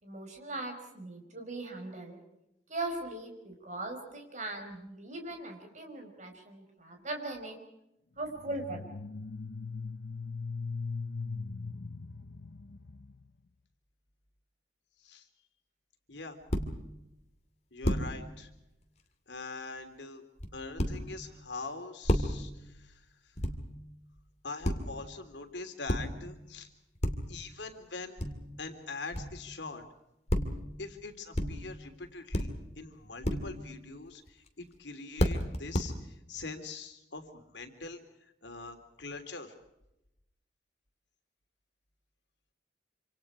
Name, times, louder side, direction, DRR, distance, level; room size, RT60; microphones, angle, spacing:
voice 1, 0.0-2.2 2.7-7.6 8.2-8.8, right 2 dB, 45° right, 4 dB, 5.2 m, -39 dB
sound 1, 8.4-13.2, left 4 dB, 65° left, 0.7 m, -39 dB
sound 2, 16.5-16.9 17.8-18.3 20.4-21.3 22.1-22.6 23.4-23.8 24.6-25.0 25.9-26.4 27.0-27.4 28.2-28.6 29.1-29.6 30.3-30.8 31.3-31.8 32.3-32.8 33.2-33.7 34.3-34.5 35.2-35.8, equal, 40° left, 2.5 m, -32 dB
voice 2, 17.7-18.5 19.3-20.2 20.5-23.0 24.4-26.7 27.3-28.2 28.6-29.8 30.8-39.5, left 3 dB, 85° left, 6 dB, 3.2 m, -43 dB
27.0 x 26.5 x 4.9 m, 0.87 s
head